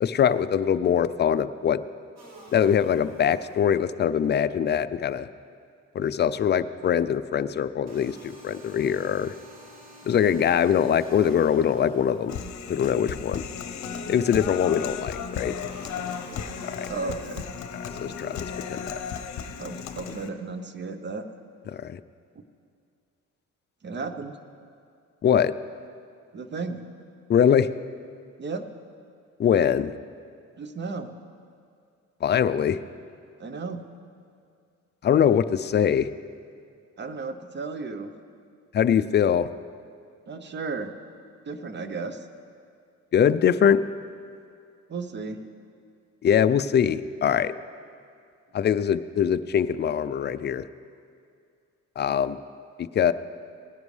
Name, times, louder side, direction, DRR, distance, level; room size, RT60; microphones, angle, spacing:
voice 1, 0.0-1.8 2.5-5.3 5.9-9.3 10.1-12.4 12.7-13.4 14.1-15.5 16.7-16.9 18.0-19.0 21.7-22.0 25.2-25.5 27.3-27.7 29.4-29.9 32.2-32.8 35.0-36.1 38.7-39.5 43.1-43.8 46.2-47.5 48.5-50.7 52.0-52.4 52.8-53.1, left 8 dB, 35° left, 13 dB, 0.4 m, -23 dB
sound 1, 2.2-4.1 7.9-13.1 15.7-18.1, right 1 dB, 60° right, 2.4 m, -49 dB
Human voice, 12.3-20.3, left 7 dB, 65° left, 0.8 m, -35 dB
voice 2, 16.9-17.5 19.6-21.3 23.8-24.4 26.3-26.8 28.4-28.6 30.6-31.1 33.4-33.8 37.0-38.1 40.3-40.9 41.5-42.3 44.9-45.4, right 4 dB, 35° right, 9 dB, 0.8 m, -34 dB
18.5 x 10.5 x 3.3 m, 2.3 s
cardioid pair, 90°, 30 cm